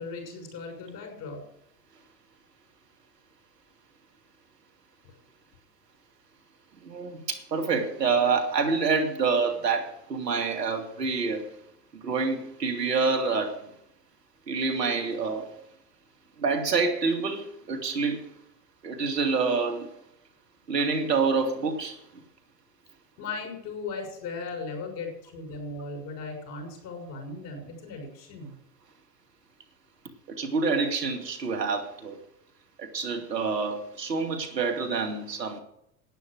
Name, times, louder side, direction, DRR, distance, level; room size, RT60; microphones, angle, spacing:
voice 1, 0.0-1.4 23.2-28.5, left 3 dB, 50° left, 3 dB, 6.2 m, -37 dB
voice 2, 6.8-11.5 11.9-13.7 14.5-15.5 16.4-18.3 18.8-19.9 20.7-22.0 30.3-32.2 32.8-35.6, right 4 dB, 80° right, 4 dB, 2.4 m, -27 dB
11.5 x 9.7 x 6.5 m, 0.78 s
figure-of-eight pair, 85°, 49 cm